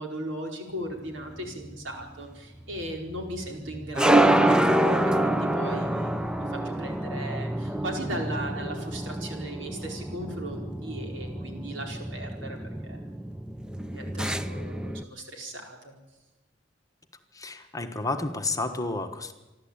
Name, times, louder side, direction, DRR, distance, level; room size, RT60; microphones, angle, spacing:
voice 1, 0.0-12.6 12.8-13.0 13.9-16.0, right 1 dB, 75° right, 2 dB, 4.6 m, -37 dB
sound 1, 1.0-15.0, right 1 dB, 5° right, 0.6 m, -27 dB
voice 2, 17.3-19.3, left 3 dB, 20° left, 6 dB, 1.4 m, -31 dB
27.0 x 12.0 x 8.8 m, 1.1 s
head